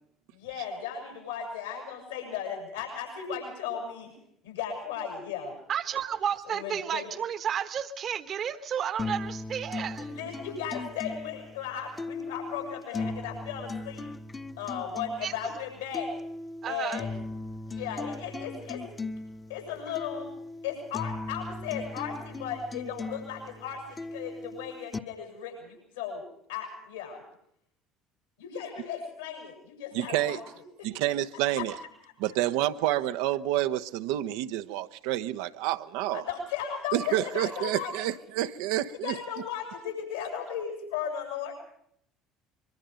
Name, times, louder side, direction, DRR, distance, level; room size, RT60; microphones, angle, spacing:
voice 1, 0.3-4.1 4.4-5.5 6.5-7.1 10.1-14.1 14.6-16.1 16.7-17.1 17.7-18.8 19.5-20.3 20.6-26.2 26.5-27.2 28.4-30.4 30.8-30.9 31.6-31.7 36.1-38.2 39.0-41.6, left 7 dB, 75° left, 7.8 m, -36 dB
voice 2, 5.7-10.1 15.2-15.3 16.6-17.0, right 8 dB, 45° right, 1.4 m, -32 dB
sound 1, 9.0-25.0, left 3 dB, 25° left, 1.4 m, -38 dB
voice 3, 29.9-30.4 30.8-31.8 32.2-36.2 36.9-39.2, right 14 dB, 65° right, 1.0 m, -29 dB
24.5 x 23.5 x 5.2 m
figure-of-eight pair, 60°, 0 cm